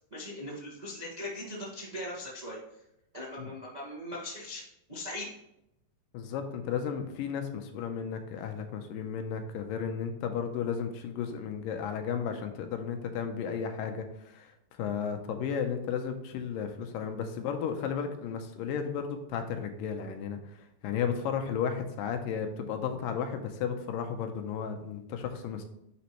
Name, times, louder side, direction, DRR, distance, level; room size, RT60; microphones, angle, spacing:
voice 1, 0.1-2.6 3.1-4.6 4.9-5.3, left 1 dB, 45° right, -5 dB, 0.5 m, -39 dB
voice 2, 6.1-14.5 14.8-20.6 20.8-25.6, left 7 dB, 80° left, 6 dB, 2.3 m, -34 dB
10.0 x 5.1 x 3.1 m, 0.83 s
omnidirectional pair, 4.2 m